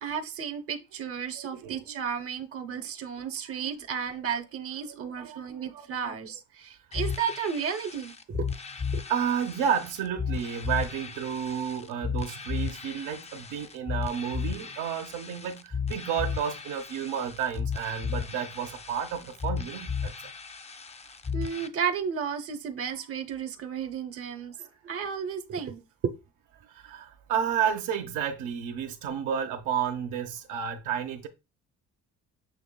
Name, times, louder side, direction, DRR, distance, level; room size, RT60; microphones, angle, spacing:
voice 1, 0.0-8.5 8.9-9.0 21.3-26.1, right 7 dB, 50° right, 0.7 m, -33 dB
voice 2, 1.4-2.0 4.9-6.2 9.1-20.1 26.7-31.3, right 8 dB, 85° right, 0.8 m, -31 dB
sound 1, 6.9-21.7, left 6 dB, 20° left, 0.4 m, -35 dB
6.7 x 2.9 x 2.2 m
cardioid pair, 90°, 30 cm